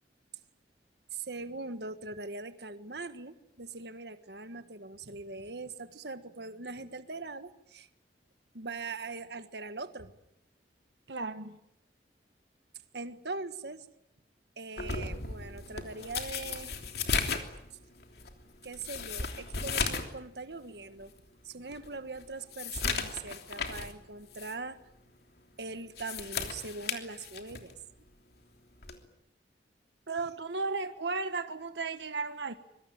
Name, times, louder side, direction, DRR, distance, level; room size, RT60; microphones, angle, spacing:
voice 1, 1.1-7.9 8.5-10.1 12.9-13.8 14.6-16.7 18.6-21.1 21.4-24.8 25.6-27.8, right 3 dB, 70° right, 1.5 m, -41 dB
voice 2, 11.1-11.6 30.1-32.5, right 3 dB, 85° right, 1.3 m, -34 dB
sound 1, 14.8-20.2 20.5-20.6 21.2-21.3 21.7-24.0 24.3-24.5 25.8-27.7 28.8-29.1, left 5 dB, 60° left, 3.2 m, -35 dB
25.5 x 23.0 x 8.9 m
head